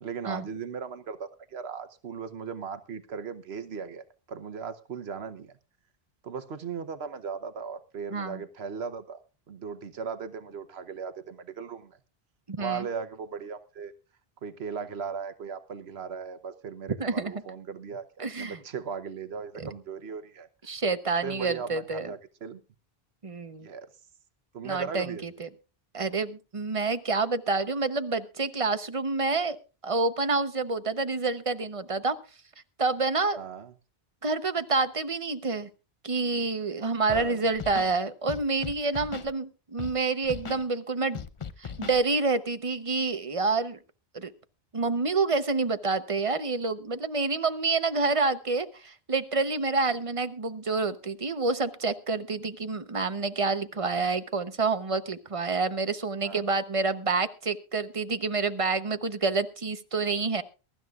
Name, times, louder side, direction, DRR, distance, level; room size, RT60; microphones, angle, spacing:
voice 1, 0.0-5.5 6.2-9.2 9.5-12.0 12.6-13.9 14.4-20.5 21.2-22.6 23.6-23.9 24.5-25.2 33.4-33.7 37.1-37.5 56.2-56.4, right 6 dB, 85° right, 10 dB, 1.2 m, -37 dB
voice 2, 8.1-8.4 12.5-12.9 17.0-17.3 18.2-18.6 19.6-19.7 20.7-22.1 23.2-23.7 24.6-25.5 25.9-29.6 29.8-32.2 32.8-33.4 34.2-35.7 36.0-41.2 41.6-43.8 44.1-44.3 44.7-60.4, right 3 dB, 35° right, 10 dB, 0.9 m, -28 dB
Scratching (performance technique), 37.1-37.3 37.5-37.9 38.3-39.3 39.8-39.9 40.2-40.6 41.1-42.0, left 6 dB, 35° left, 0.6 m, -38 dB
22.5 x 12.5 x 2.4 m, 0.32 s
omnidirectional pair, 1.0 m